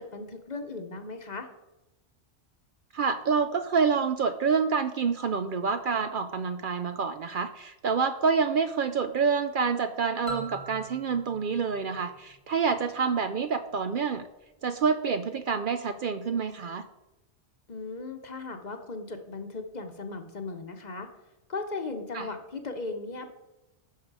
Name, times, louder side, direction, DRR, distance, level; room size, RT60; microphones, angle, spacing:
voice 1, 0.0-1.5 17.7-21.1 21.5-23.3, left 3 dB, 45° left, 6 dB, 0.9 m, -37 dB
voice 2, 2.9-14.2 14.6-16.9 22.1-22.3, right 5 dB, 60° right, 10 dB, 0.6 m, -27 dB
sound 1, 10.3-13.0, right 2 dB, 25° right, 2.0 m, -43 dB
10.5 x 6.6 x 4.7 m, 0.98 s
omnidirectional pair, 1.1 m